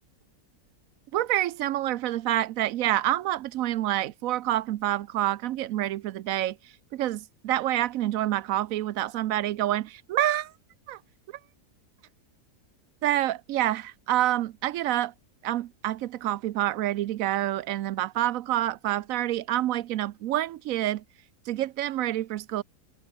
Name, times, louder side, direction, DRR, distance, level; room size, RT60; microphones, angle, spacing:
voice 1, 1.1-6.5 6.9-10.5 10.9-11.0 13.0-15.1 15.4-21.0 21.5-22.6, right 13 dB, 70° right, 0.9 m, -27 dB
omnidirectional pair, 1.7 m